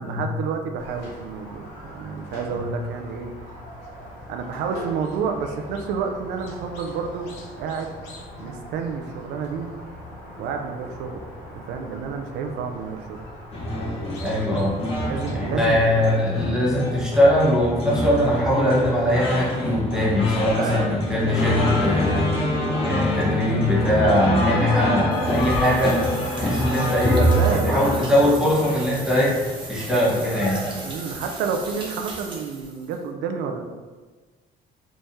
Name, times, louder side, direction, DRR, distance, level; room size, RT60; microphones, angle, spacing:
voice 1, 0.0-3.3 4.3-7.3 7.6-7.9 8.4-9.7 10.4-11.2 11.7-13.2 15.0-16.2 20.5-21.0 27.2-28.1 30.8-33.6, right 6 dB, 85° right, 5 dB, 0.5 m, -29 dB
Squeak, 0.8-15.7, equal, 85° left, 0.9 m, -41 dB
sound 1, 13.5-30.9, equal, 35° left, 1.0 m, -25 dB
voice 2, 14.2-14.8 15.3-26.0 26.4-29.4 29.7-30.6, left 1 dB, 5° right, -7 dB, 1.3 m, -21 dB
sound 2, 25.1-33.0, right 2 dB, 30° right, 0.8 m, -37 dB
3.5 x 3.1 x 2.7 m, 1.3 s
cardioid pair, 110°, 17 cm